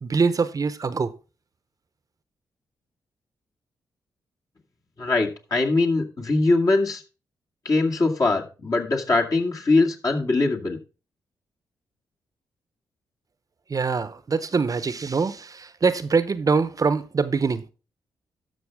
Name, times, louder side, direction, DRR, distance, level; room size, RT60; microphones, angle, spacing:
voice 1, 0.0-1.1 13.7-17.6, right 4 dB, 40° right, 0.8 m, -23 dB
voice 2, 5.0-7.0 7.6-10.8, left 3 dB, 45° left, 2.2 m, -22 dB
13.0 x 5.9 x 3.6 m
hypercardioid pair, 40°, 9 cm